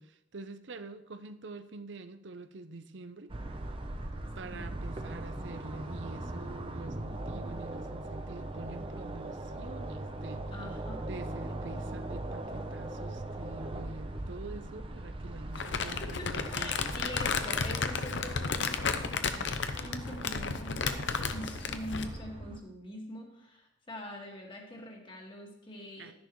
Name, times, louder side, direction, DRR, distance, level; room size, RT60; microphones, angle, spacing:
voice 1, 0.0-3.3 4.1-10.4 11.0-16.8 26.0-26.1, right 3 dB, 65° right, 0.7 m, -46 dB
sound 1, 3.3-22.6, right 1 dB, 30° right, 0.7 m, -40 dB
voice 2, 10.5-11.0 16.0-26.1, left 1 dB, 25° left, 1.9 m, -44 dB
Crumpling crinkling, 15.6-22.2, left 5 dB, 65° left, 0.7 m, -33 dB
12.5 x 10.5 x 3.1 m
head